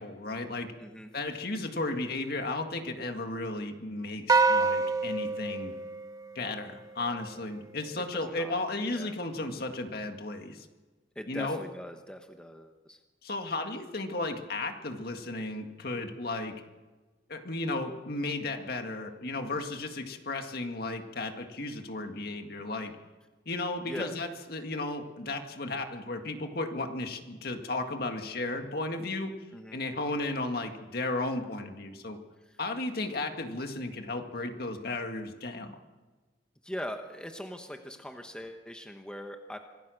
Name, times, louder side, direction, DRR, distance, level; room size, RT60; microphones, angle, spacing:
voice 1, 0.0-0.7 1.1-5.7 6.4-10.7 11.3-11.6 13.2-16.6 17.3-22.9 23.5-29.3 29.7-32.2 32.6-35.8, left 2 dB, 55° left, 5 dB, 2.0 m, -34 dB
voice 2, 0.8-1.1 8.1-9.1 11.1-13.0 23.9-24.2 29.5-29.8 32.4-32.6 36.6-39.6, equal, 5° left, 5 dB, 1.2 m, -41 dB
sound 1, 4.3-6.8, right 4 dB, 20° right, 0.7 m, -27 dB
25.5 x 16.5 x 6.5 m, 1.2 s
head